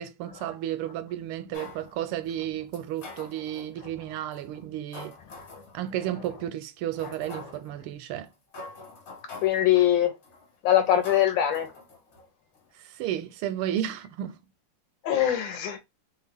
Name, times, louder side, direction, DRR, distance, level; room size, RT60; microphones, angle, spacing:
voice 1, 0.0-5.2 5.7-8.3 12.8-14.4, right 11 dB, 85° right, 1.4 m, -33 dB
sound 1, 1.5-1.9 2.7-3.7 4.3-4.4 4.9-5.7 6.2-6.3 7.0-7.7 8.3-8.4 8.5-9.7 10.2-10.5 11.0-12.3 12.6-12.7, left 3 dB, 45° left, 1.5 m, -44 dB
voice 2, 9.4-10.1 10.6-11.7 15.0-15.8, left 11 dB, 70° left, 1.4 m, -22 dB
3.5 x 2.3 x 3.4 m
omnidirectional pair, 2.3 m